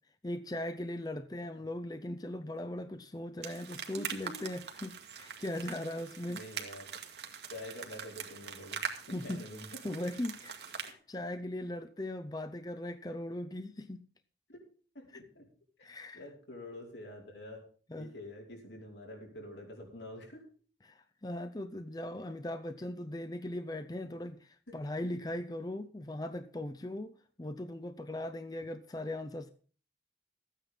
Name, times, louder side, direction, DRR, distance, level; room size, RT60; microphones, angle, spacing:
voice 1, 0.2-6.4 9.1-9.4 9.8-14.0 15.1-15.2 15.8-16.3 17.9-18.1 20.8-29.5, left 1 dB, 20° left, 0.6 m, -39 dB
sound 1, 3.4-10.9, right 7 dB, 70° right, 1.9 m, -43 dB
voice 2, 4.0-4.4 6.3-6.9 7.5-8.8 9.1-9.7 14.5-14.6 15.0-15.5 15.8-17.6 18.0-20.4 24.7-25.2, left 1 dB, 85° left, 5.1 m, -47 dB
14.0 x 9.3 x 5.5 m
head